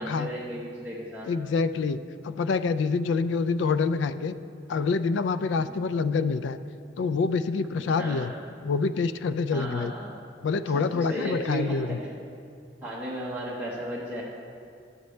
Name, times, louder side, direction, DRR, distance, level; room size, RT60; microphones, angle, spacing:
voice 1, 0.0-1.3 8.0-8.3 9.5-10.2 10.7-12.1 12.8-14.2, right 1 dB, 10° right, -7 dB, 0.9 m, -34 dB
voice 2, 1.3-4.4 4.7-6.6 7.0-8.3 8.6-9.9 10.4-12.0, left 4 dB, 75° left, 13 dB, 0.3 m, -26 dB
11.5 x 8.0 x 3.2 m, 2.4 s
head